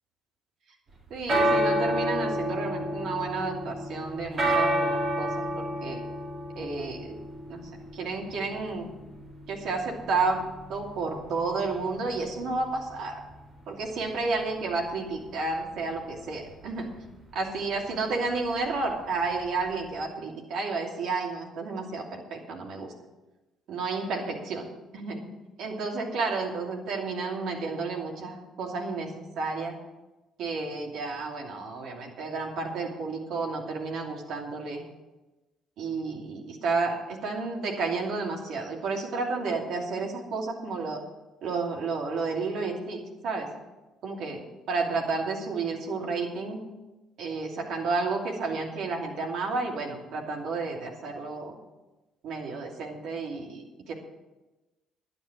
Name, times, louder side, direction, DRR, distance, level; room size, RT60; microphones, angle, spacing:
sound 1, 0.9-20.0, right 1 dB, 45° right, 3.9 m, -32 dB
voice 1, 1.1-5.3 5.6-6.0 6.6-7.2 7.5-7.6 7.9-8.9 9.5-10.4 10.7-13.2 13.7-16.9 17.3-22.9 23.7-25.2 25.6-29.8 30.4-34.8 35.8-41.0 41.4-43.5 44.0-44.4 44.7-46.6 47.2-51.6 52.2-53.9, right 3 dB, 65° right, 0 dB, 2.7 m, -31 dB
11.5 x 10.5 x 6.3 m, 1.1 s
hypercardioid pair, 50°, 0 cm